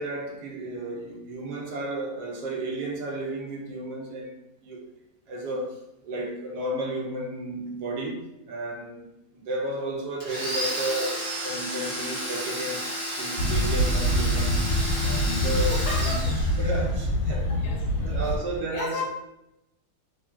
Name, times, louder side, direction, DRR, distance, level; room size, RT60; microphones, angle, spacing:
voice 1, 0.0-4.3 4.6-4.8 5.3-5.8 6.0-12.8 13.2-14.6 15.0-16.2 16.6-17.5 18.0-19.0, right 1 dB, 85° right, 1.2 m, -33 dB
Domestic sounds home sounds, 10.2-17.0, equal, 40° right, 0.8 m, -32 dB
sound 1, 13.4-18.4, equal, 85° left, 1.1 m, -25 dB
voice 2, 15.7-16.5 17.3-17.9 18.7-19.0, left 3 dB, 60° left, 0.6 m, -34 dB
2.8 x 2.4 x 2.2 m
omnidirectional pair, 1.7 m